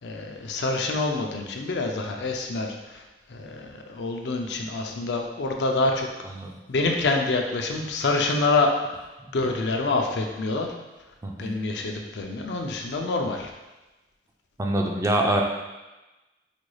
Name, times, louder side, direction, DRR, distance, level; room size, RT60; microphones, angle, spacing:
voice 1, 0.0-3.0 3.3-6.1 6.7-8.7 9.3-10.7 11.4-13.5, left 3 dB, 75° left, 2 dB, 0.5 m, -26 dB
voice 2, 6.2-6.5 11.2-11.5 14.6-15.4, right 1 dB, 15° right, 1 dB, 0.3 m, -25 dB
5.0 x 2.3 x 3.1 m, 1.1 s
head